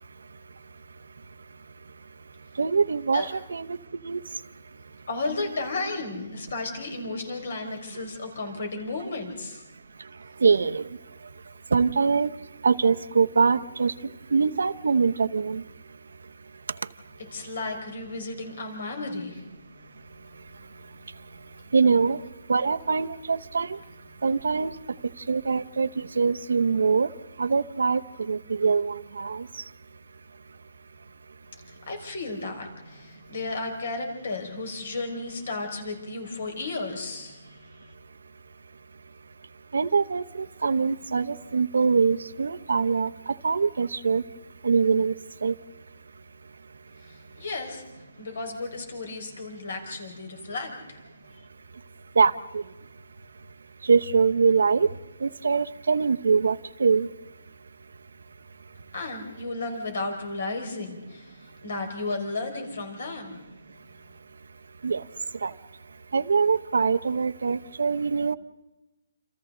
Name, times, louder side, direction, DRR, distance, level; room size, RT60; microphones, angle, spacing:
voice 1, 2.6-3.8 4.0-4.2 10.4-10.9 11.7-12.3 12.6-13.9 14.3-15.6 21.7-22.2 22.5-23.8 24.2-24.7 25.3-27.1 27.4-28.0 28.3-29.5 39.7-44.2 44.6-45.1 45.4-45.5 52.2-52.6 53.8-54.9 55.2-57.1 64.8-65.0 65.4-65.5 66.1-68.3, right 5 dB, 85° right, 11 dB, 0.9 m, -23 dB
voice 2, 5.1-9.6 17.3-19.5 31.6-37.9 47.0-51.0 58.9-63.4, left 3 dB, 55° left, 4 dB, 5.1 m, -34 dB
28.5 x 27.5 x 3.9 m, 1.0 s
hypercardioid pair, 175°, 0 cm